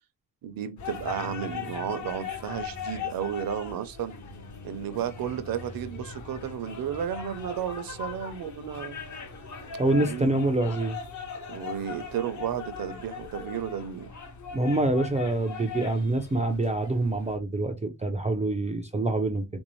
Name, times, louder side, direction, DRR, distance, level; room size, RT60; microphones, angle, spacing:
voice 1, 0.4-4.1 4.6-9.0 10.0-10.4 11.5-14.1, right 9 dB, 60° right, 0.6 m, -33 dB
sound 1, 0.8-17.4, left 5 dB, 45° left, 0.8 m, -39 dB
voice 2, 9.8-11.0 14.5-19.4, right 2 dB, 20° right, 0.3 m, -26 dB
3.7 x 2.6 x 3.0 m
wide cardioid pair, 170°, 39 cm